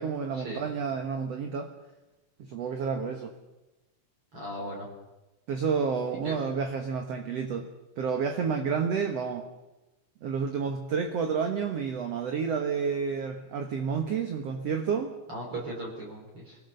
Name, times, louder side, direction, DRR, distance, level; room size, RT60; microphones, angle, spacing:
voice 1, 0.0-1.7 2.4-3.3 5.5-7.7 8.0-9.5 10.2-15.1, right 6 dB, 60° right, 5 dB, 1.8 m, -30 dB
voice 2, 4.3-4.9 6.2-6.3 15.3-16.6, right 1 dB, 35° right, -2 dB, 4.5 m, -37 dB
24.0 x 18.0 x 6.8 m, 1.1 s
omnidirectional pair, 4.4 m